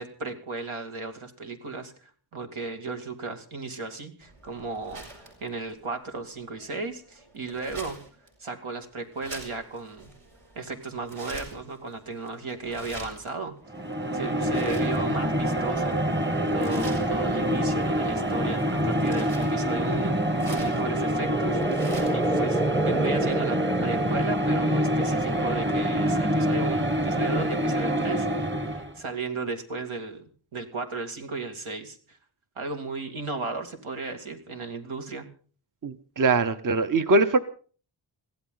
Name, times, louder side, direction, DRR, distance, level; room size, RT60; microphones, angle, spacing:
voice 1, 0.0-8.0 8.4-10.1 10.6-13.6 14.1-16.0 16.5-20.2 20.5-30.2 30.5-32.2 32.6-35.3, right 3 dB, 85° right, 5 dB, 2.6 m, -35 dB
sound 1, 4.2-22.3, right 2 dB, 65° right, 5.8 m, -47 dB
sound 2, 13.7-29.0, equal, 25° right, 1.4 m, -26 dB
sound 3, 20.8-24.9, right 2 dB, ahead, 0.7 m, -31 dB
voice 2, 35.8-37.4, right 3 dB, 40° right, 10 dB, 0.9 m, -22 dB
22.0 x 15.5 x 3.9 m, 0.42 s
wide cardioid pair, 120°, 48 cm